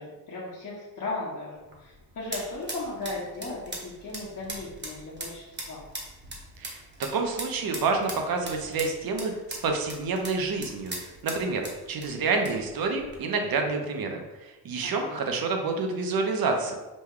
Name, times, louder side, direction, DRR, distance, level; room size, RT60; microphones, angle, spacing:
voice 1, 0.0-5.9 14.8-15.3, left 2 dB, 50° left, -6 dB, 1.1 m, -37 dB
sound 1, 1.5-13.2, right 2 dB, 25° right, 1.0 m, -41 dB
voice 2, 7.1-11.0 11.2-16.8, right 4 dB, 65° right, 3 dB, 0.8 m, -28 dB
5.1 x 2.2 x 3.7 m, 1.1 s
cardioid pair, 115°, 39 cm